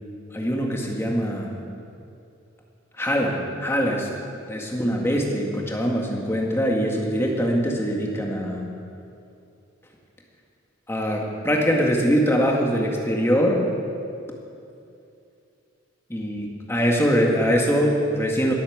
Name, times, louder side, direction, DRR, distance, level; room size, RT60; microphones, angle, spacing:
voice 1, 0.3-1.5 3.0-4.1 4.5-8.7 10.9-13.6 16.1-18.5, equal, 10° left, -1 dB, 1.9 m, -23 dB
20.5 x 8.8 x 7.5 m, 2.6 s
head